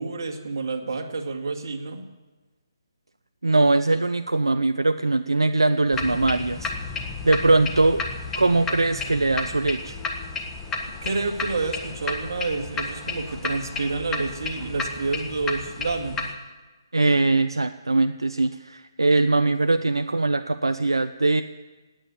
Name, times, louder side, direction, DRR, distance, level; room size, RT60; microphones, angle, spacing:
voice 1, 0.0-2.1 11.0-16.3, right 3 dB, 55° right, 3 dB, 2.3 m, -29 dB
voice 2, 3.4-8.0 8.4-10.0 16.9-21.4, right 2 dB, 80° right, 10 dB, 0.6 m, -21 dB
sound 1, 5.9-16.3, left 4 dB, 10° left, 1.5 m, -32 dB
18.0 x 9.1 x 8.3 m, 1.2 s
figure-of-eight pair, 140°, 2 cm